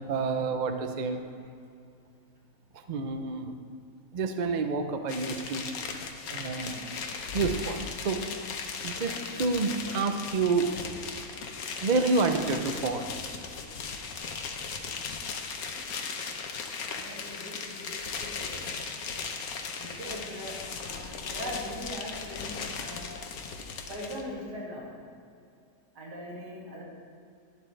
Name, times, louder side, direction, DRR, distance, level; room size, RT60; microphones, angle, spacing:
voice 1, 0.1-1.2 2.9-3.5 4.1-5.7 6.3-6.7 7.3-8.3 8.8-10.8 11.8-13.1, right 4 dB, 55° right, 7 dB, 0.4 m, -28 dB
sound 1, 5.1-24.2, left 5 dB, 65° left, 1.3 m, -37 dB
voice 2, 16.9-18.7 19.8-23.1 23.9-24.9 25.9-26.8, left 1 dB, 90° right, -5 dB, 3.0 m, -41 dB
12.0 x 11.5 x 3.3 m, 2.4 s
omnidirectional pair, 1.7 m